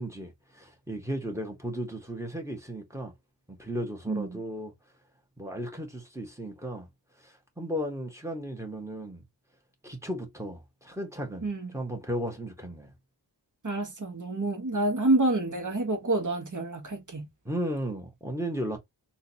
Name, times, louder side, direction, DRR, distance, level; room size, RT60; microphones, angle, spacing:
voice 1, 0.0-3.1 3.6-4.7 5.4-6.9 7.2-9.2 9.8-11.5 11.7-12.9 17.4-18.8, equal, 5° right, 1.6 m, -35 dB
voice 2, 4.1-4.4 11.4-11.7 13.6-17.3, right 2 dB, 45° right, 1.3 m, -28 dB
3.6 x 2.7 x 2.9 m
cardioid pair, 40°, 43 cm